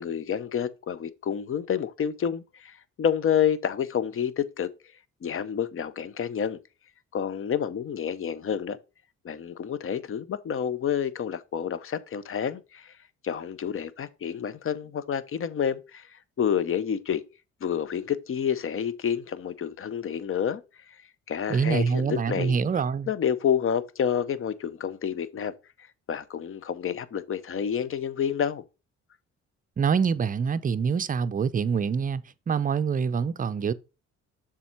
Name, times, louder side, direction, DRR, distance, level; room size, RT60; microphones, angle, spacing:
voice 1, 0.0-4.7 5.2-6.6 7.1-8.8 9.2-12.9 13.2-17.2 17.6-20.6 20.9-21.0 21.3-22.6 23.1-25.5 26.1-28.6, left 8 dB, 45° left, 0.7 m, -29 dB
voice 2, 21.5-23.1 29.8-33.7, right 6 dB, 30° right, 0.5 m, -25 dB
6.9 x 3.7 x 4.4 m
cardioid pair, 90°, 30 cm